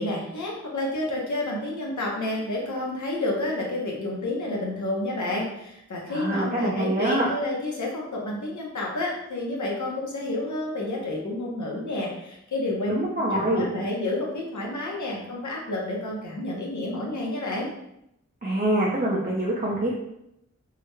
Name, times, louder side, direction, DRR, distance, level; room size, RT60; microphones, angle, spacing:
voice 1, 0.0-13.0 13.3-17.7, left 1 dB, 80° left, -2 dB, 0.9 m, -30 dB
voice 2, 6.1-7.3 12.9-13.7 18.4-20.0, right 1 dB, 30° right, -5 dB, 0.6 m, -25 dB
3.5 x 2.2 x 3.2 m, 0.81 s
wide cardioid pair, 90°, 29 cm